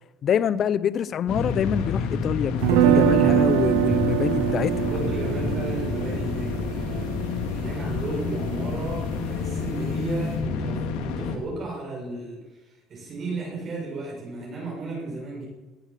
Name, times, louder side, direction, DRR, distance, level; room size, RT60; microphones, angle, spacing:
voice 1, 0.2-4.7, left 8 dB, 45° left, 18 dB, 0.7 m, -25 dB
sound 1, 1.3-11.4, left 5 dB, 80° left, 2.2 m, -29 dB
sound 2, 2.6-8.6, right 13 dB, 90° right, 0.5 m, -24 dB
voice 2, 4.6-15.5, right 2 dB, 40° right, -3 dB, 6.8 m, -34 dB
18.5 x 9.1 x 7.5 m, 1.1 s
cardioid pair, 110°, 0 cm